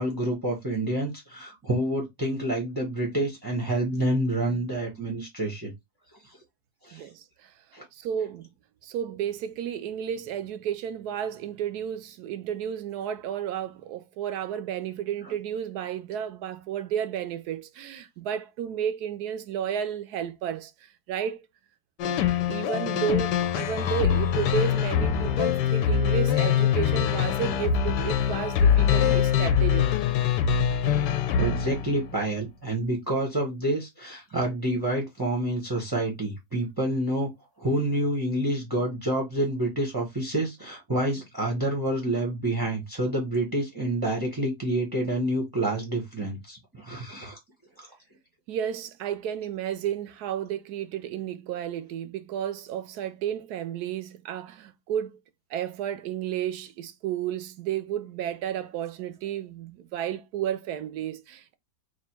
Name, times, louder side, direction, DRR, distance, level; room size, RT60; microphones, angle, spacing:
voice 1, 0.0-5.7 6.8-7.0 7.7-7.8 15.2-15.3 31.4-37.3 37.6-47.4 47.8-47.9, right 1 dB, 20° right, 0.6 m, -28 dB
voice 2, 6.9-7.5 7.9-8.5 8.8-20.7 21.1-21.5 22.5-29.9 48.5-55.2 55.5-61.6, right 9 dB, 70° right, 1.0 m, -32 dB
sound 1, 22.0-32.2, left 8 dB, 80° left, 1.2 m, -24 dB
3.4 x 2.5 x 4.4 m
omnidirectional pair, 1.9 m